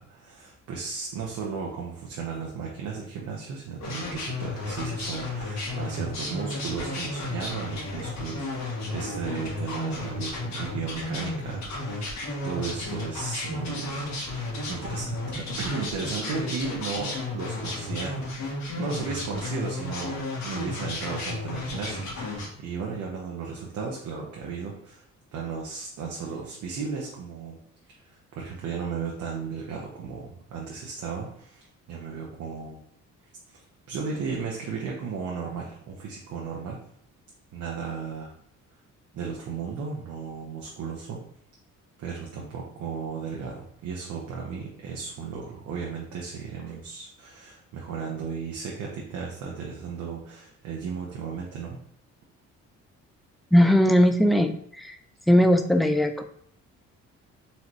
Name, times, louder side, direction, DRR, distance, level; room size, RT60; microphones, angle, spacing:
voice 1, 0.0-12.1 12.4-18.4 18.8-25.0 25.3-27.6 28.0-32.8 33.9-36.8 37.5-38.3 39.1-41.2 42.0-51.8, right 5 dB, 75° right, -2 dB, 0.9 m, -35 dB
sound 1, 3.8-22.5, left 2 dB, 65° left, 1.4 m, -33 dB
voice 2, 53.5-55.0 55.3-56.2, equal, ahead, 6 dB, 0.4 m, -19 dB
4.1 x 3.2 x 3.0 m, 0.67 s
cardioid pair, 90°, 30 cm